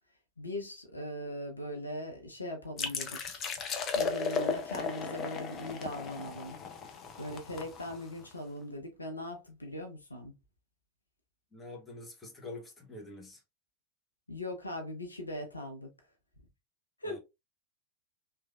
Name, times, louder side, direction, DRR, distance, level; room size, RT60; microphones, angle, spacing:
voice 1, 0.4-3.4 3.9-6.6 6.8-10.3 14.3-15.9 17.0-17.2, left 1 dB, 80° left, 0.7 m, -40 dB
sound 1, 2.8-8.3, left 5 dB, 30° left, 0.5 m, -35 dB
voice 2, 11.5-13.4 17.0-17.2, left 2 dB, 15° left, 0.9 m, -46 dB
3.2 x 2.3 x 2.3 m
figure-of-eight pair, 90°, 0 cm